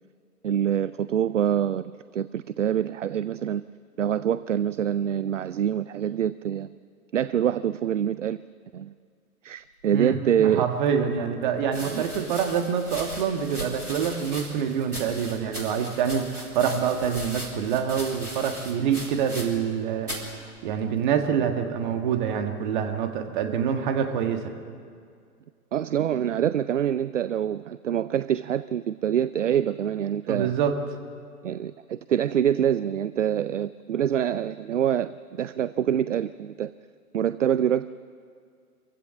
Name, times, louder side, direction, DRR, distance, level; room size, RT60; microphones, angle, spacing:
voice 1, 0.4-3.6 4.0-6.8 7.1-8.4 8.7-8.9 9.4-10.7 11.8-12.0 25.7-30.5 31.4-36.7 37.1-37.9, right 9 dB, 55° right, 16 dB, 0.5 m, -25 dB
voice 2, 9.9-20.1 20.6-24.5 30.3-30.7, right 7 dB, 30° right, 6 dB, 1.7 m, -26 dB
sound 1, 10.6-10.7 11.6-19.8 20.0-20.3 21.1-21.5, equal, 85° right, 4.6 m, -38 dB
25.5 x 15.5 x 7.7 m, 2.2 s
figure-of-eight pair, 120°, 45 cm